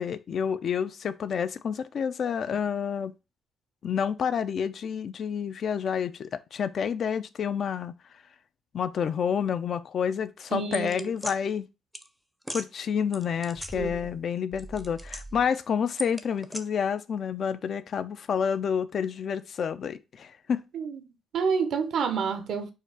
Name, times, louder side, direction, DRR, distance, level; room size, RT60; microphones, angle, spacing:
voice 1, 0.0-3.1 3.8-8.0 8.7-11.7 12.5-20.6, left 7 dB, 55° left, 0.4 m, -29 dB
voice 2, 10.5-11.1 13.7-13.9 20.7-21.0 21.3-22.7, right 6 dB, 70° right, 0.7 m, -28 dB
sound 1, 10.7-11.4 11.9-12.1 12.4-12.7 13.1-14.2 14.5-15.5 16.0-16.6, right 1 dB, 5° right, 0.5 m, -38 dB
4.6 x 2.4 x 4.7 m
cardioid pair, 90°, 0 cm